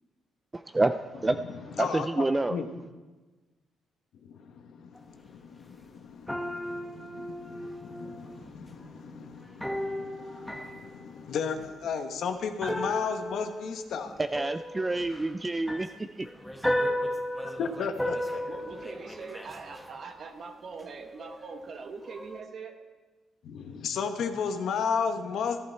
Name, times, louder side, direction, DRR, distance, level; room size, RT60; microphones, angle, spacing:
voice 1, 0.5-1.4 1.7-2.6 14.2-16.3, right 2 dB, 20° right, 9 dB, 0.4 m, -28 dB
voice 2, 1.8-2.7 4.2-14.1 17.4-18.4 23.4-25.6, left 6 dB, 70° left, 7 dB, 1.1 m, -34 dB
sound 1, 5.0-5.1 6.3-8.6 9.6-11.9 12.6-20.2 20.8-21.7 22.0-22.4, equal, 5° left, 1.1 m, -35 dB
voice 3, 18.5-22.8, right 5 dB, 55° right, 6 dB, 1.4 m, -42 dB
14.0 x 11.0 x 4.5 m, 1.3 s
cardioid pair, 90°, 0 cm